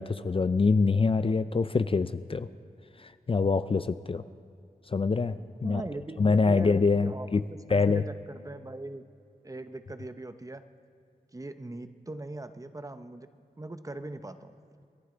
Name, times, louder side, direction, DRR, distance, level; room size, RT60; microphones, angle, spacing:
voice 1, 0.0-2.5 3.0-4.2 4.9-5.8 6.2-7.4 7.7-8.0, left 4 dB, 35° left, 12 dB, 0.4 m, -25 dB
voice 2, 5.6-9.1 9.4-10.6 11.3-13.3 13.6-14.6, right 2 dB, 20° right, 10 dB, 0.8 m, -41 dB
27.5 x 11.5 x 3.9 m, 2.4 s
wide cardioid pair, 65°, 15 cm